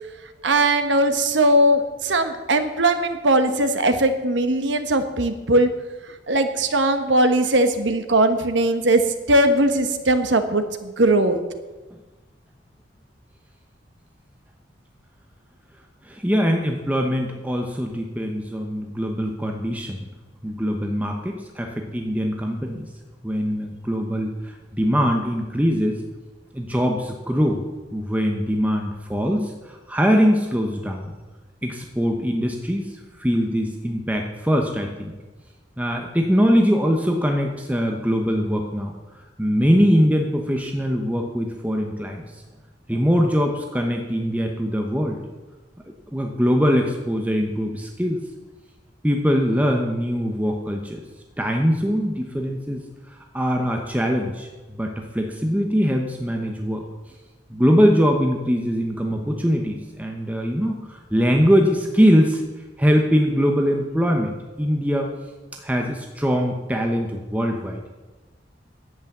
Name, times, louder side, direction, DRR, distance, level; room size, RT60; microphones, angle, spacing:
voice 1, 0.4-5.7 6.3-11.4, right 1 dB, 85° right, 8 dB, 1.2 m, -19 dB
voice 2, 16.0-20.0 20.4-22.9 23.2-26.0 26.5-27.7 27.9-31.1 31.6-35.1 35.8-38.9 39.4-42.2 42.9-45.2 46.1-48.2 49.0-51.0 51.4-56.8 57.5-62.4 62.8-65.1 65.6-67.8, equal, 10° right, 2 dB, 1.0 m, -22 dB
11.0 x 8.6 x 7.3 m, 1.2 s
head